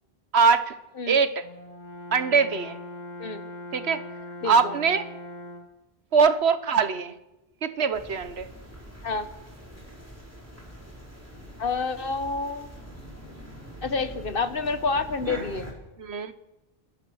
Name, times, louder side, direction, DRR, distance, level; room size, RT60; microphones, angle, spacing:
voice 1, 0.3-0.7 1.1-1.4 2.1-2.8 3.7-4.0 4.4-5.1 6.1-7.1 7.6-8.5 16.0-16.3, right 5 dB, 85° right, 12 dB, 1.4 m, -22 dB
Brass instrument, 1.4-5.8, left 1 dB, 45° left, 1.6 m, -40 dB
voice 2, 4.4-4.7 9.0-9.3 11.6-12.7 13.8-15.7, left 4 dB, 60° left, 11 dB, 1.4 m, -28 dB
sound 1, 7.9-15.7, equal, 15° right, 4.5 m, -43 dB
28.5 x 14.0 x 6.4 m, 0.97 s
omnidirectional pair, 1.1 m